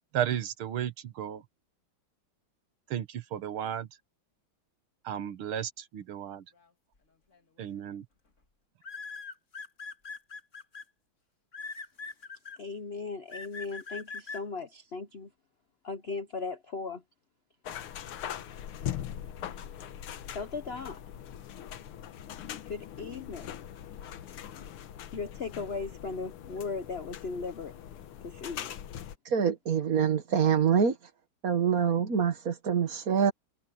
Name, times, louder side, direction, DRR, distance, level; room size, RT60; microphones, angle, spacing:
voice 1, 0.1-1.4 2.9-3.9 5.0-6.5 7.6-8.1, right 10 dB, 80° right, 2.0 m, -34 dB
sound 1, 7.3-7.6 8.8-10.8 11.5-12.6 13.3-14.4, left 4 dB, 35° left, 2.6 m, -41 dB
voice 2, 12.6-15.3 15.8-17.0 20.3-21.0 22.7-23.5 25.1-27.7 28.2-28.7, left 4 dB, 60° left, 0.6 m, -37 dB
sound 2, 17.7-29.2, left 10 dB, 85° left, 1.9 m, -41 dB
voice 3, 29.3-31.0 31.4-33.3, right 7 dB, 45° right, 1.8 m, -25 dB
omnidirectional pair, 2.3 m